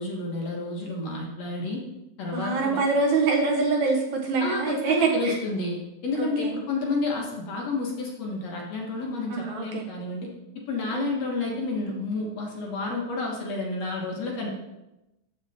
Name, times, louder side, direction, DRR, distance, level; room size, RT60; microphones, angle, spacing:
voice 1, 0.0-1.8 2.2-2.8 4.4-5.8 6.0-10.3 10.7-14.5, left 3 dB, 55° left, -1 dB, 2.3 m, -30 dB
voice 2, 2.3-5.4 6.2-6.6 9.3-9.8 10.9-11.1, right 4 dB, 65° right, 2 dB, 2.3 m, -25 dB
14.0 x 6.6 x 4.3 m, 0.95 s
omnidirectional pair, 3.9 m